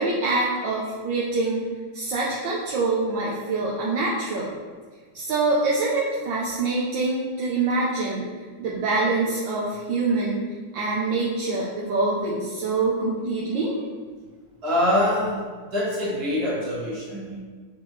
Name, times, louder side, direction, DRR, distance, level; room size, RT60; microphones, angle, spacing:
voice 1, 0.0-1.7 1.9-4.5 5.1-8.3 8.6-10.5 10.7-13.8, right 3 dB, 75° right, -5 dB, 1.4 m, -25 dB
voice 2, 14.6-15.4 15.7-17.4, left 1 dB, 55° right, -6 dB, 2.1 m, -24 dB
5.9 x 5.2 x 3.2 m, 1.5 s
omnidirectional pair, 2.1 m